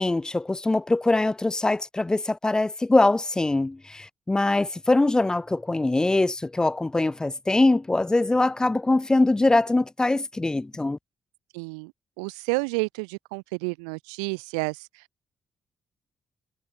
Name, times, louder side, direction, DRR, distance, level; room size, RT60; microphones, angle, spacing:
voice 1, 0.0-11.0, left 2 dB, 20° left, 5.3 m, -23 dB
voice 2, 11.5-11.9 12.2-14.9, right 34 dB, 85° right, 2.6 m, -30 dB
hypercardioid pair, 40°, 3 cm